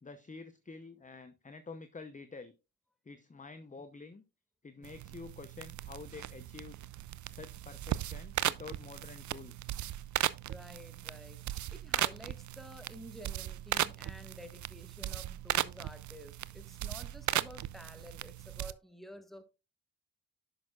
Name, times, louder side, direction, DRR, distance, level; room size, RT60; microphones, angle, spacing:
voice 1, 0.0-2.5 3.1-4.2 4.6-6.8 7.3-9.8, left 4 dB, 20° left, 0.8 m, -48 dB
sound 1, 4.8-18.7, right 13 dB, 45° right, 0.4 m, -37 dB
voice 2, 10.5-19.4, equal, ahead, 1.5 m, -51 dB
10.5 x 6.5 x 2.4 m
supercardioid pair, 45°, 41 cm